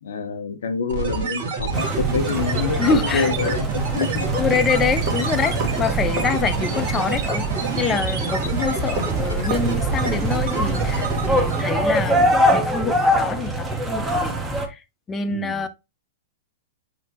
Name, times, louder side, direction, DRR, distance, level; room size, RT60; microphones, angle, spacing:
voice 1, 0.0-4.3 15.3-15.6, left 5 dB, 75° left, 0.7 m, -27 dB
sound 1, 0.9-11.8, right 4 dB, 60° right, 1.3 m, -27 dB
sound 2, 1.7-14.7, right 1 dB, 10° right, 0.7 m, -24 dB
sound 3, 1.8-12.9, right 2 dB, 40° right, 1.1 m, -36 dB
voice 2, 2.8-3.3 4.3-7.5 7.7-14.3 14.6-15.7, left 5 dB, 20° left, 0.5 m, -25 dB
5.8 x 2.1 x 2.8 m
hypercardioid pair, 115°, 0 cm